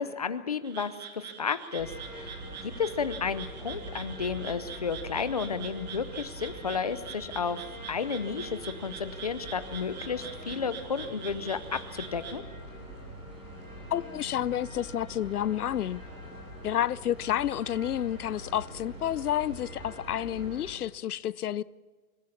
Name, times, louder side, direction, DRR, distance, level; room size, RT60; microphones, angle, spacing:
voice 1, 0.0-7.6 7.9-12.4, left 6 dB, 25° left, 0.6 m, -32 dB
Frog, 0.6-12.4, right 7 dB, 30° right, 1.7 m, -45 dB
sound 1, 1.8-20.7, equal, 15° right, 3.5 m, -43 dB
voice 2, 13.9-16.0 16.6-21.6, left 11 dB, 80° left, 0.7 m, -30 dB
25.5 x 16.0 x 7.2 m
hypercardioid pair, 175°, 44 cm